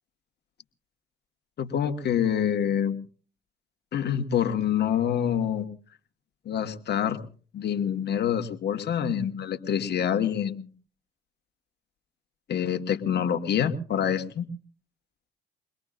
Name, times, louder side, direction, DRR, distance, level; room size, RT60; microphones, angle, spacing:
voice 1, 1.6-3.0 3.9-5.7 6.4-7.2 7.5-10.7 12.5-14.5, left 9 dB, 55° left, 6 dB, 1.6 m, -26 dB
23.0 x 21.0 x 2.5 m, 0.41 s
hypercardioid pair, 55°, 20 cm